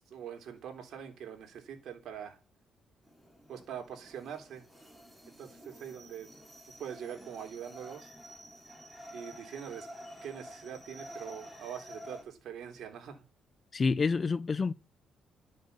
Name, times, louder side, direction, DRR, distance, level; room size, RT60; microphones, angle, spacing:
voice 1, 0.0-2.4 3.5-4.6 5.4-6.3 6.6-8.1 9.1-9.9 10.2-13.2, right 8 dB, 70° right, 3.3 m, -43 dB
sound 1, 3.0-12.2, equal, 5° right, 6.1 m, -50 dB
voice 2, 13.7-14.7, left 4 dB, 35° left, 0.7 m, -28 dB
12.5 x 6.6 x 6.7 m
cardioid pair, 90°, 0 cm